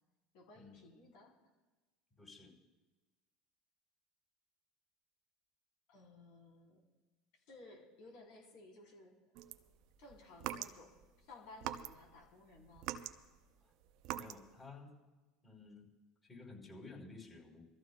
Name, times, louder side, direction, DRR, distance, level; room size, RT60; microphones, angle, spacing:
voice 1, 0.3-1.3 5.9-6.8 7.5-9.2 10.0-12.9, left 2 dB, 70° left, -1 dB, 3.6 m, -57 dB
voice 2, 2.2-2.5 14.1-15.0 15.4-15.9 16.2-17.7, left 3 dB, 20° left, -2 dB, 4.4 m, -53 dB
sound 1, 9.4-11.1 11.6-12.2 12.6-14.5, right 12 dB, 65° right, 0.6 m, -44 dB
25.5 x 14.0 x 2.3 m, 1.2 s
hypercardioid pair, 85°, 0 cm